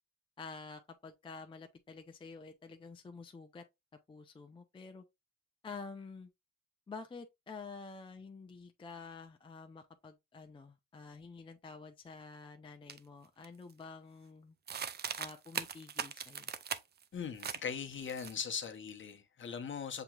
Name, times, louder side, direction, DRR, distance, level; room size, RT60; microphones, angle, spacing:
voice 1, 0.4-3.6 4.1-5.0 5.6-6.3 6.9-14.6 15.2-16.5, left 4 dB, 15° left, 0.5 m, -49 dB
sound 1, 12.9-13.0 13.4-13.8 14.7-17.0 17.4-17.6 17.9-18.6, right 7 dB, 35° right, 0.5 m, -40 dB
voice 2, 17.1-20.0, left 7 dB, 40° left, 0.9 m, -40 dB
6.8 x 2.9 x 2.3 m
cardioid pair, 90°, 30 cm